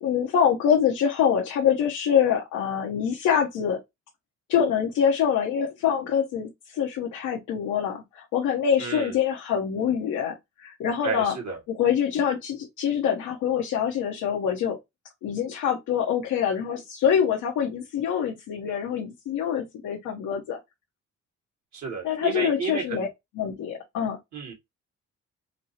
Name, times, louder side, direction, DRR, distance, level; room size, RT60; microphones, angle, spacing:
voice 1, 0.0-3.8 4.5-11.4 11.7-14.8 15.2-20.6 22.0-23.1 23.4-24.2, left 8 dB, 85° left, 0.9 m, -25 dB
voice 2, 8.8-9.1 11.0-11.6 21.7-23.1 24.3-24.5, right 5 dB, 65° right, 1.7 m, -31 dB
4.3 x 2.0 x 2.7 m
cardioid pair, 90°, 30 cm